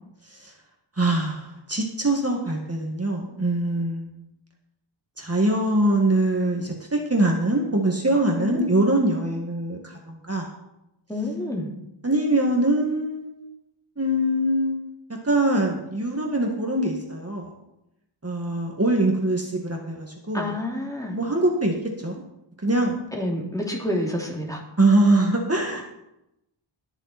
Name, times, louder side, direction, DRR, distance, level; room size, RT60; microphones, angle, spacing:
voice 1, 1.0-4.2 5.2-10.5 12.0-13.5 14.0-14.8 15.2-17.5 18.2-20.5 21.1-21.7 22.0-22.2 22.6-23.0 24.8-25.8, right 1 dB, 30° right, 0 dB, 2.0 m, -23 dB
voice 2, 8.4-8.7 11.1-11.7 20.3-21.2 23.2-24.6, left 1 dB, 5° left, -1 dB, 2.8 m, -28 dB
21.0 x 7.1 x 4.3 m, 0.86 s
wide cardioid pair, 70°, 50 cm